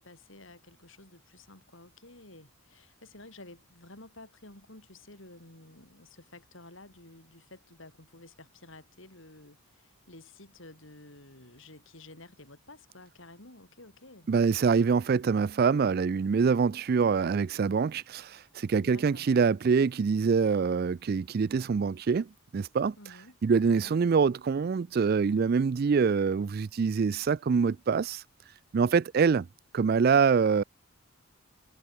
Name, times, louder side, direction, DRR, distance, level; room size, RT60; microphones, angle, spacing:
voice 1, 0.0-14.3 18.8-19.3 23.0-23.4 23.7-24.0, left 2 dB, 60° left, 4.7 m, -52 dB
voice 2, 14.3-22.3 22.5-22.9 23.4-28.2 28.7-29.5 29.7-30.6, right 5 dB, 45° right, 0.3 m, -25 dB
head